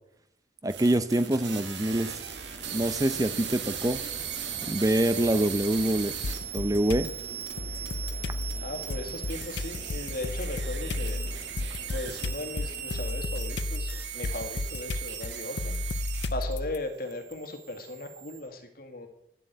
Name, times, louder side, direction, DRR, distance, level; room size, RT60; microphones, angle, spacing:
voice 1, 0.6-2.1 2.7-4.0 4.7-6.1 6.5-7.1, right 1 dB, 20° right, 11 dB, 0.6 m, -25 dB
sound 1, 0.7-16.5 16.8-18.4, right 8 dB, 80° right, 2.0 m, -38 dB
sound 2, 1.9-13.1, right 1 dB, 45° right, 1.5 m, -47 dB
sound 3, 6.2-7.1 7.6-16.8, left 2 dB, 75° left, 0.6 m, -33 dB
voice 2, 8.6-11.2 11.9-15.8 16.3-19.1, left 2 dB, 55° left, 5 dB, 2.0 m, -37 dB
11.0 x 7.6 x 9.1 m, 0.81 s
head